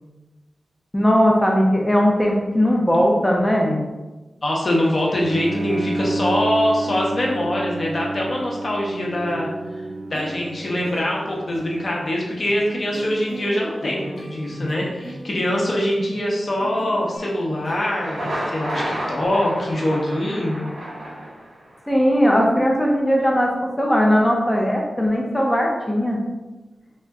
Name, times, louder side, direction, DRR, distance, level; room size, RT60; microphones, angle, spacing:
voice 1, 0.9-3.8 21.9-26.2, equal, 5° left, -1 dB, 0.5 m, -18 dB
voice 2, 4.4-20.6, left 1 dB, 45° left, -2 dB, 0.7 m, -23 dB
Bowed string instrument, 5.1-12.1, right 2 dB, 50° right, 0.3 m, -30 dB
sound 1, 8.9-19.7, equal, 25° right, 1.0 m, -37 dB
Thunder, 17.9-21.8, right 1 dB, 85° right, 1.0 m, -31 dB
3.6 x 2.1 x 3.4 m, 1.1 s
wide cardioid pair, 135°, 0 cm